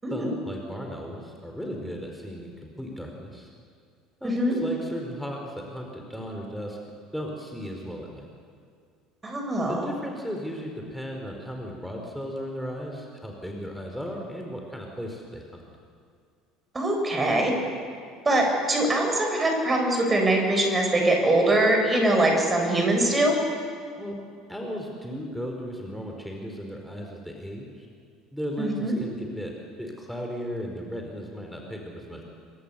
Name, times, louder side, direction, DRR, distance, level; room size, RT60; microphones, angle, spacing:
voice 1, 0.1-3.5 4.2-6.8 7.1-8.3 9.7-15.6 24.0-24.2 24.5-27.9 28.3-32.2, equal, ahead, 1 dB, 4.3 m, -36 dB
voice 2, 4.2-4.5 9.2-9.9 16.7-17.5 18.2-23.4 28.6-29.0, right 1 dB, 20° right, 2 dB, 7.5 m, -23 dB
28.5 x 24.0 x 6.9 m, 2.2 s
figure-of-eight pair, 65°, 0 cm